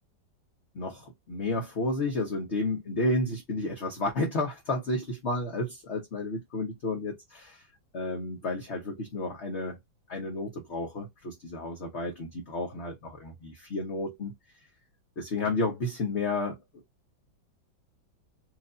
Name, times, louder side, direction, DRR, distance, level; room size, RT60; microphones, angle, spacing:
voice 1, 0.7-7.6 7.9-9.8 10.1-14.3 15.2-16.6, left 2 dB, 45° left, 1.1 m, -31 dB
4.5 x 2.6 x 2.6 m
omnidirectional pair, 2.2 m